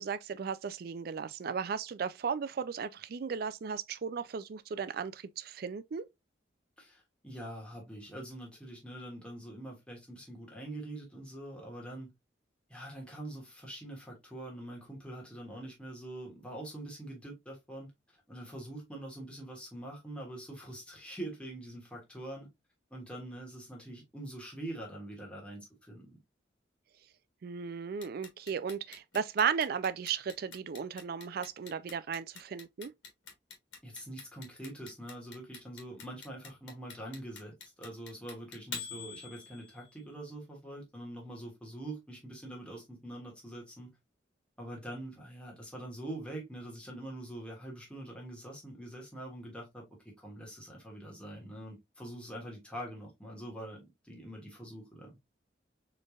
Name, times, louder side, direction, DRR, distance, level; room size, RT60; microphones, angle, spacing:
voice 1, 0.0-6.0 27.4-32.9, right 6 dB, 55° right, 0.4 m, -35 dB
voice 2, 6.8-12.1 12.7-17.9 18.3-22.5 22.9-26.2 33.8-44.0 44.6-49.8 50.2-55.2, right 1 dB, 5° left, 1.4 m, -44 dB
Clock, 28.0-40.0, left 5 dB, 80° left, 1.4 m, -45 dB
4.2 x 3.3 x 2.4 m
head